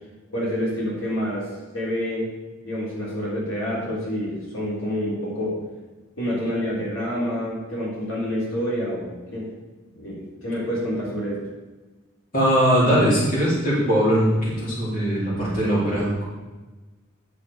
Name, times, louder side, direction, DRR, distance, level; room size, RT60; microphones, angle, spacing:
voice 1, 0.3-2.3 2.6-5.6 6.2-9.5 10.0-11.4, equal, 80° left, -6 dB, 3.6 m, -28 dB
voice 2, 12.3-16.2, equal, 40° left, -7 dB, 3.8 m, -20 dB
9.4 x 7.6 x 4.9 m, 1.2 s
head